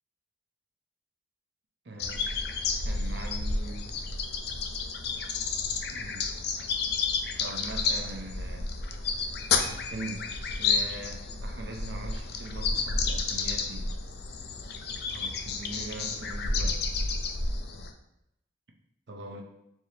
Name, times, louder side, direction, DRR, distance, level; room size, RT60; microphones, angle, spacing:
voice 1, 1.8-2.5 2.8-3.9 5.9-6.4 7.4-8.7 9.6-13.9 15.1-16.9 19.1-19.4, right 2 dB, 60° right, 2 dB, 0.6 m, -42 dB
sound 1, 2.0-17.9, left 4 dB, 55° left, 0.4 m, -31 dB
4.5 x 3.3 x 2.8 m, 0.83 s
head